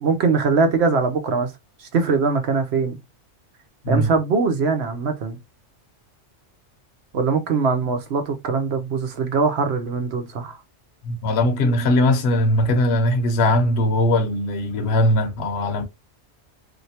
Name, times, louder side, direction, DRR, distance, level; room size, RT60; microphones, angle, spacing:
voice 1, 0.0-1.5 1.8-3.0 3.9-5.4 7.1-10.6, right 4 dB, 65° right, 1.0 m, -22 dB
voice 2, 11.0-15.8, left 1 dB, 65° left, 1.0 m, -20 dB
3.2 x 2.8 x 2.8 m
omnidirectional pair, 1.2 m